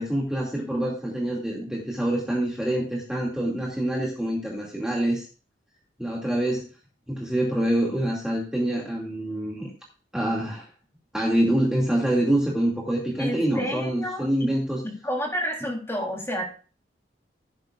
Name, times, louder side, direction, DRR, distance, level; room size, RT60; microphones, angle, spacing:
voice 1, 0.0-5.3 6.0-6.7 7.1-9.7 10.1-10.7 11.1-14.8, right 1 dB, 5° right, -4 dB, 2.4 m, -26 dB
voice 2, 13.2-14.5 14.8-16.5, equal, 15° left, 0 dB, 3.5 m, -30 dB
16.0 x 9.5 x 2.5 m, 0.37 s
head